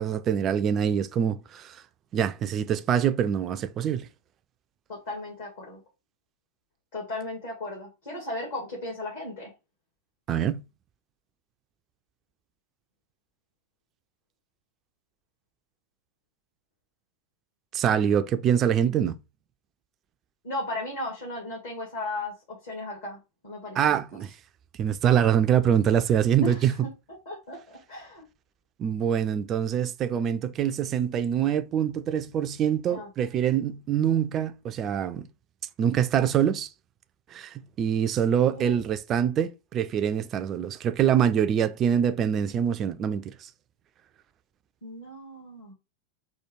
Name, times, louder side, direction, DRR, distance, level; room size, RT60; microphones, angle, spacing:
voice 1, 0.0-1.8 2.1-4.1 10.3-10.6 17.7-19.2 23.8-24.3 24.8-26.7 28.8-35.3 35.8-36.7 37.3-43.5, right 9 dB, 30° right, 0.4 m, -25 dB
voice 2, 4.9-5.8 6.9-9.5 20.4-24.0 26.4-26.7 27.3-28.2 32.9-33.1 38.5-38.8 44.8-45.7, left 1 dB, 55° left, 2.0 m, -36 dB
4.4 x 2.3 x 4.7 m
figure-of-eight pair, 90°, 0 cm